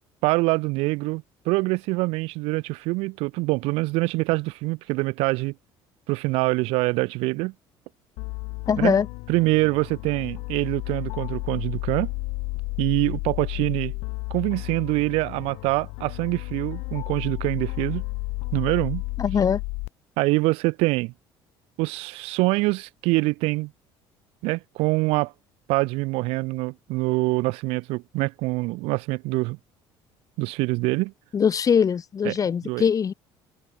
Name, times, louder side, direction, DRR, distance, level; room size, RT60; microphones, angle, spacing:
voice 1, 0.2-5.5 6.1-7.5 8.8-8.9 9.3-12.1 12.8-13.9 14.3-18.0 18.5-19.0 20.2-21.1 21.8-23.7 24.4-25.3 25.7-29.6 30.4-31.1 32.2-32.3 32.6-32.8, right 24 dB, 85° right, 1.9 m, -25 dB
sound 1, 8.2-19.9, left 27 dB, 90° left, 1.5 m, -32 dB
voice 2, 8.7-9.1 19.2-19.6 31.3-33.1, left 7 dB, 35° left, 2.5 m, -21 dB
cardioid pair, 110°, 10 cm